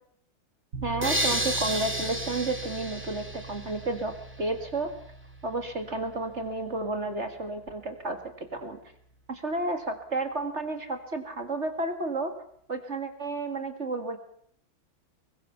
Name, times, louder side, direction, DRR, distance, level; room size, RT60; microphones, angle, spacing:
sound 1, 0.7-9.6, right 4 dB, 60° right, 6.7 m, -43 dB
voice 1, 0.8-4.9 5.4-8.8 9.3-12.3 12.7-14.2, right 2 dB, 35° right, 7 dB, 2.2 m, -31 dB
sound 2, 1.0-4.0, equal, 5° right, 2.7 m, -31 dB
22.5 x 19.5 x 5.8 m, 0.65 s
omnidirectional pair, 2.1 m